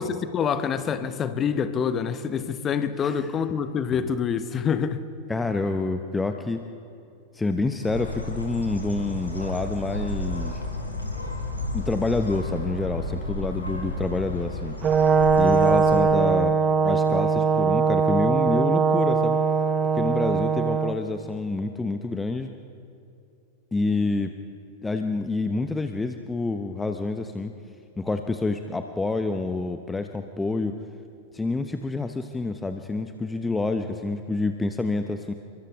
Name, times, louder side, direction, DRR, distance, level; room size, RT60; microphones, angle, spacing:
voice 1, 0.0-5.0, left 7 dB, 25° left, 10 dB, 1.3 m, -26 dB
voice 2, 5.3-6.6 7.3-10.6 11.7-14.8 15.4-16.6 16.8-19.4 19.8-22.5 23.7-24.3 24.8-27.5 28.0-30.7 31.3-35.3, left 3 dB, 10° left, 7 dB, 0.9 m, -28 dB
Bird, 7.8-16.0, left 1 dB, 85° left, 3.9 m, -32 dB
Brass instrument, 14.8-21.0, right 5 dB, 25° right, 1.1 m, -21 dB
29.5 x 24.0 x 3.7 m, 2.6 s
figure-of-eight pair, 90°, 0 cm